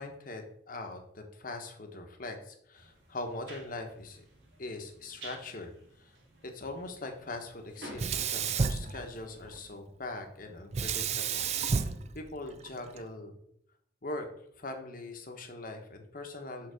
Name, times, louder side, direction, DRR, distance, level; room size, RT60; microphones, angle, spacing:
voice 1, 0.0-4.2 4.6-5.7 6.0-6.1 6.4-11.5 11.8-13.4 14.0-14.3 14.6-16.7, left 2 dB, 50° left, 5 dB, 1.1 m, -41 dB
sound 1, 2.7-9.7, right 1 dB, 70° right, 2.1 m, -52 dB
Sink (filling or washing), 7.9-9.6 10.7-13.0, right 5 dB, 35° right, 0.4 m, -31 dB
6.7 x 4.0 x 6.4 m, 0.71 s
head